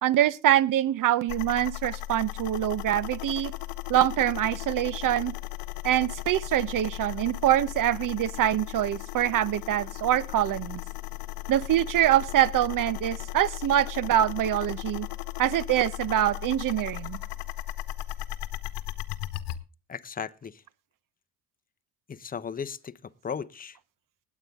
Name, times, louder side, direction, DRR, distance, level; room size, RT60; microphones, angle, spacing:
voice 1, 0.0-3.5 3.9-5.3 5.8-10.8 11.5-15.1 15.4-17.2, right 12 dB, 45° right, 21 dB, 0.9 m, -24 dB
sound 1, 1.3-19.6, left 16 dB, 60° left, 1.2 m, -37 dB
voice 2, 19.9-20.6 22.1-23.0 23.2-23.8, left 6 dB, 20° left, 12 dB, 0.8 m, -36 dB
19.0 x 8.4 x 3.6 m, 0.30 s
supercardioid pair, 85°, 46 cm